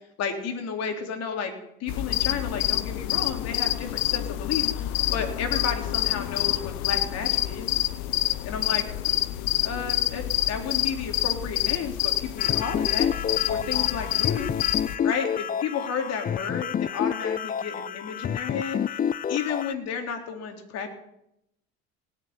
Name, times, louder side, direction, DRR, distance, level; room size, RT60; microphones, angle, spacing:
voice 1, 0.2-1.5 1.8-7.8 8.5-9.2 9.6-13.1 13.5-14.5 15.0-18.8 19.3-20.9, left 6 dB, 60° left, 4 dB, 3.8 m, -32 dB
sound 1, 1.9-14.9, left 16 dB, 75° left, 0.9 m, -27 dB
sound 2, 12.4-19.7, left 8 dB, 30° left, 0.6 m, -29 dB
18.5 x 7.7 x 9.7 m, 0.79 s
supercardioid pair, 95°, 29 cm